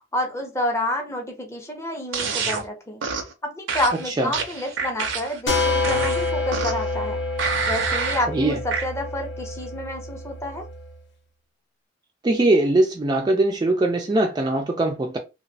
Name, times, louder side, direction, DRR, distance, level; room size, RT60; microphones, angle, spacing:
voice 1, 0.1-3.0 3.4-7.2 7.7-10.7, left 1 dB, 15° left, 0.6 m, -29 dB
sound 1, 2.1-2.6 3.0-3.3 3.7-5.4 5.8-6.9 7.4-8.3 8.7-8.9, right 5 dB, 80° right, 0.5 m, -27 dB
sound 2, 5.5-10.9, left 3 dB, 70° left, 0.7 m, -27 dB
voice 2, 8.3-8.6 12.2-15.2, right 2 dB, 20° right, 0.3 m, -21 dB
2.9 x 2.0 x 2.6 m
head